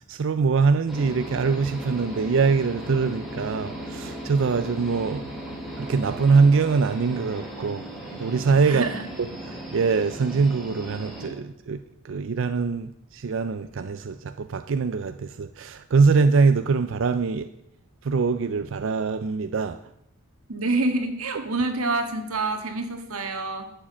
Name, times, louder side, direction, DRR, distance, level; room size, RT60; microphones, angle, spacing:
voice 1, 0.1-5.3 5.8-7.8 8.2-8.9 9.4-17.5 18.0-19.8, right 4 dB, 60° right, 10 dB, 0.4 m, -23 dB
sound 1, 0.9-11.3, right 1 dB, ahead, 2.9 m, -37 dB
voice 2, 8.7-9.1 20.5-23.7, right 2 dB, 90° right, 7 dB, 1.6 m, -27 dB
11.5 x 7.4 x 7.4 m, 0.81 s
head